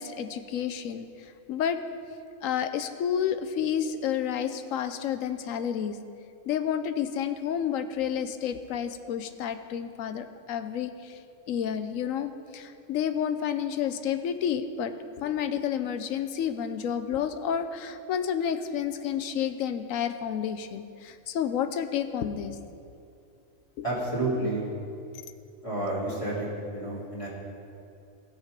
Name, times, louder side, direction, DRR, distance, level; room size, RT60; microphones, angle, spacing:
voice 1, 0.0-1.8 2.4-6.0 6.5-11.2 11.5-22.6 23.8-23.9 24.4-24.5, left 8 dB, 80° left, 9 dB, 1.0 m, -30 dB
voice 2, 23.8-24.6 25.6-26.5 26.7-27.3, right 2 dB, 25° left, -6 dB, 2.9 m, -30 dB
16.0 x 6.5 x 5.2 m, 2.6 s
omnidirectional pair, 1.4 m